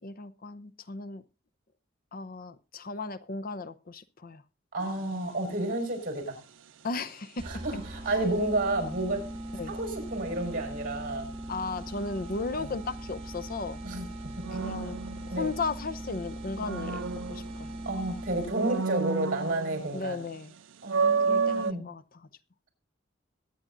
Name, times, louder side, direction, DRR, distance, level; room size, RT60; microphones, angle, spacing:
voice 1, 0.0-1.2 2.1-4.4 6.8-7.5 9.5-9.7 11.5-13.8 14.5-15.0 15.2-17.0 17.3-17.7 19.9-20.5 21.3-22.3, left 3 dB, 50° left, 15 dB, 0.7 m, -35 dB
voice 2, 4.7-6.4 7.4-9.3 9.7-11.3 12.6-12.7 13.8-14.4 15.3-15.5 17.9-20.2 20.8-21.9, right 2 dB, 50° right, 6 dB, 5.2 m, -31 dB
sound 1, 4.8-5.1 14.4-15.9 16.3-18.0 18.4-20.0 20.3-20.4 20.8-21.7, right 5 dB, 85° right, 0.6 m, -30 dB
sound 2, 7.4-18.8, right 1 dB, 30° right, 2.9 m, -40 dB
22.5 x 9.6 x 2.6 m, 0.29 s
head